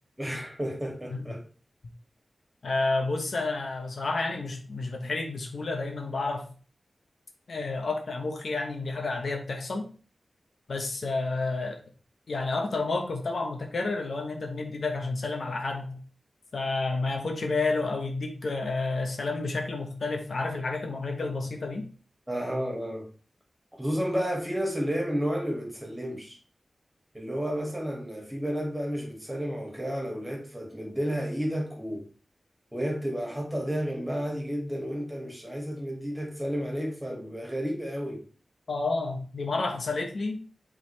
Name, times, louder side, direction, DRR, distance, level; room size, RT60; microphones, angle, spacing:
voice 1, 0.2-1.4 22.3-23.1 23.7-26.4 27.1-32.0 32.7-38.2, equal, 10° right, 2.3 m, -31 dB
voice 2, 2.6-6.5 7.5-9.9 10.7-11.8 12.3-16.0 16.5-21.9 38.7-40.4, left 3 dB, 70° left, 1.0 m, -30 dB
7.9 x 3.8 x 3.3 m
wide cardioid pair, 115°, 0 cm